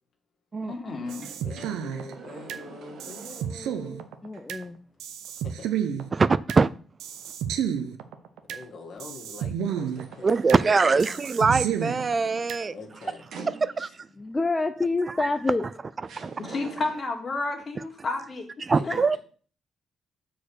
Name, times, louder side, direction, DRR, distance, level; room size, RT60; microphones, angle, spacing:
voice 1, 0.6-1.3 16.4-18.5 18.8-19.1, left 3 dB, 40° left, 2.2 m, -31 dB
sound 1, 1.0-3.9 4.3-4.4 9.8-14.1 15.3-15.4 16.1-17.2, right 5 dB, 70° right, 1.7 m, -46 dB
sound 2, 1.1-2.6 3.0-4.6 5.0-6.6 7.0-8.6 9.0-10.6 11.0-12.6, right 9 dB, 90° right, 0.8 m, -31 dB
voice 2, 1.4-4.1 5.4-5.7 8.5-11.3 12.7-13.2 13.8-13.9 18.7-19.2, left 3 dB, 65° left, 2.0 m, -44 dB
voice 3, 4.2-4.8 14.2-15.6, left 3 dB, 20° left, 0.5 m, -27 dB
voice 4, 6.1-6.7 10.2-12.7 13.6-13.9 15.2-15.3 16.2-16.3 18.6-19.2, right 4 dB, 35° right, 0.3 m, -22 dB
6.4 x 4.6 x 6.5 m
cardioid pair, 90°, 0 cm